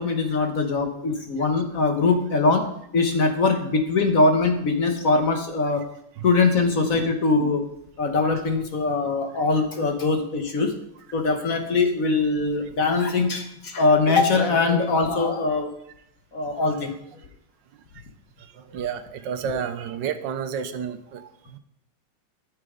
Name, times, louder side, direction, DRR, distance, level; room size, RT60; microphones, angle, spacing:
voice 1, 0.0-5.8 6.2-7.6 8.0-10.7 11.1-15.7 16.3-16.9 19.5-19.6, left 3 dB, 50° left, 6 dB, 1.3 m, -22 dB
voice 2, 18.7-21.6, right 7 dB, 70° right, 11 dB, 1.3 m, -31 dB
13.5 x 6.6 x 5.0 m, 0.75 s
omnidirectional pair, 2.1 m